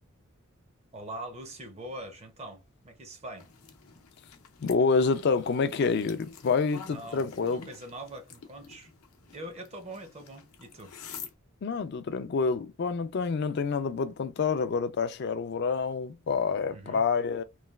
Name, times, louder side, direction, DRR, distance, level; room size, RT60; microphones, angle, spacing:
voice 1, 0.9-3.5 6.9-8.9 9.3-10.9 16.7-17.1, right 1 dB, 30° right, 0.5 m, -43 dB
sound 1, 3.4-11.3, left 6 dB, 85° left, 0.7 m, -48 dB
voice 2, 4.6-7.7 11.6-17.4, left 5 dB, 50° left, 0.3 m, -27 dB
3.1 x 2.2 x 2.2 m
head